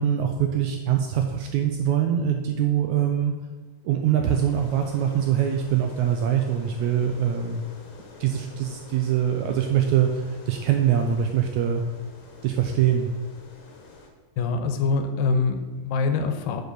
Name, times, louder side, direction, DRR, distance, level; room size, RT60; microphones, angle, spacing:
voice 1, 0.0-3.3 3.8-7.7 8.2-11.8 12.4-13.1, right 9 dB, 80° right, 3 dB, 1.7 m, -23 dB
sound 1, 4.3-14.1, left 3 dB, 65° left, 2.4 m, -47 dB
voice 2, 14.4-16.6, left 4 dB, 85° left, 8 dB, 2.4 m, -24 dB
6.1 x 5.1 x 6.6 m, 1.3 s
omnidirectional pair, 3.9 m